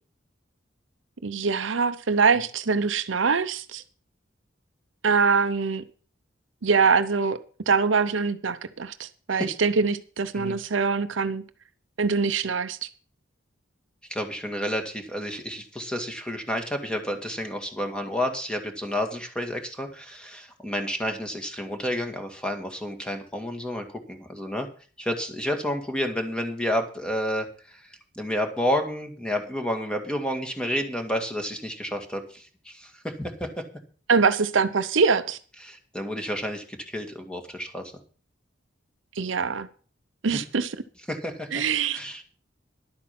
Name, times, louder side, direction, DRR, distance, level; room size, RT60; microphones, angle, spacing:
voice 1, 1.2-3.8 5.0-5.8 6.6-7.4 7.7-11.4 12.0-12.8 34.1-35.4 39.2-39.7 40.2-40.8 41.5-42.0, right 5 dB, 75° right, 0.7 m, -23 dB
voice 2, 14.1-24.7 25.0-27.8 28.2-33.7 35.6-37.9 40.3-40.4 41.1-41.6 41.9-42.2, equal, 5° left, 1.9 m, -30 dB
11.5 x 8.7 x 5.9 m
head